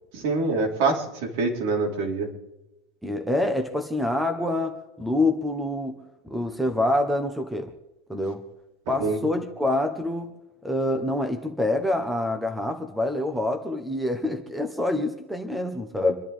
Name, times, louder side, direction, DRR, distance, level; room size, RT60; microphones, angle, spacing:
voice 1, 0.1-2.3 9.0-9.2, right 3 dB, 60° right, 0 dB, 4.3 m, -25 dB
voice 2, 3.0-6.0 6.2-7.7 8.1-8.5 8.9-10.3 10.6-16.2, left 1 dB, 5° right, 6 dB, 1.1 m, -26 dB
28.0 x 11.0 x 3.6 m, 0.95 s
supercardioid pair, 160°, 0 cm